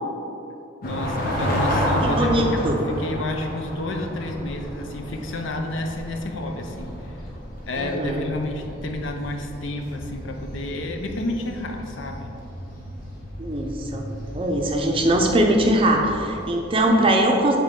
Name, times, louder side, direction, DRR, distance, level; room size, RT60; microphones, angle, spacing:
voice 1, 0.8-7.2 7.7-12.3, left 1 dB, 70° left, 3 dB, 0.6 m, -30 dB
sound 1, 0.8-16.8, equal, 45° left, 1.2 m, -31 dB
voice 2, 2.1-2.8 7.8-8.2 13.4-14.0 14.3-17.6, right 1 dB, 25° right, 1 dB, 0.5 m, -21 dB
7.2 x 4.4 x 3.7 m, 2.8 s
head